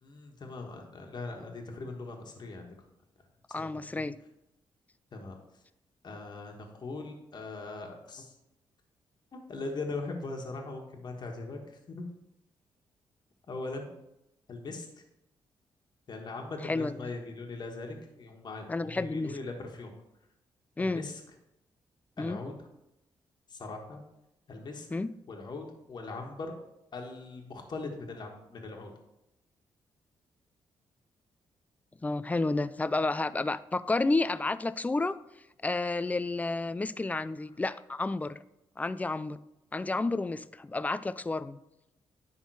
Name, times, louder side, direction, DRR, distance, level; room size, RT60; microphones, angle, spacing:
voice 1, 0.0-2.7 3.5-4.0 5.1-5.4 6.0-8.3 9.3-11.6 11.9-12.0 13.5-13.9 14.5-14.9 16.1-19.9 20.8-21.2 22.2-22.6 23.5-24.0 24.5-24.9 25.3-26.5 26.9-28.9, left 3 dB, 50° left, 2 dB, 1.4 m, -40 dB
voice 2, 3.5-4.2 16.6-17.1 18.7-19.3 20.8-21.1 22.2-22.4 24.9-25.1 32.0-35.2 35.6-38.4 38.8-39.4 39.7-41.6, left 2 dB, 15° left, 16 dB, 0.3 m, -31 dB
10.5 x 3.7 x 4.7 m, 0.88 s
cardioid pair, 80°, 9 cm